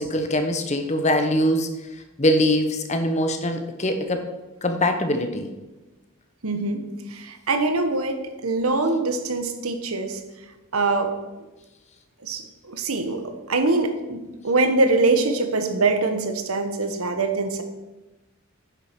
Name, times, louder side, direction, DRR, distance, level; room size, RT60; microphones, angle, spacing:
voice 1, 0.0-1.7 2.2-4.3 4.6-5.5, left 1 dB, 30° left, 7 dB, 0.9 m, -22 dB
voice 2, 6.4-6.8 7.1-10.2 10.7-11.1 12.2-17.6, right 3 dB, 85° right, 7 dB, 1.4 m, -23 dB
9.8 x 7.6 x 5.9 m, 1.1 s
head